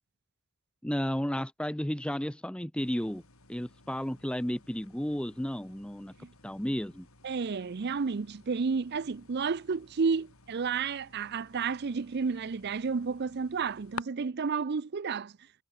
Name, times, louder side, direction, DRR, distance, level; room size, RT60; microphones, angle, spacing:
voice 1, 0.8-3.2 3.5-6.1 6.4-7.1, equal, 5° left, 0.7 m, -33 dB
sound 1, 2.8-14.0, left 4 dB, 75° left, 7.0 m, -52 dB
voice 2, 7.2-15.3, right 5 dB, 50° right, 0.5 m, -31 dB
head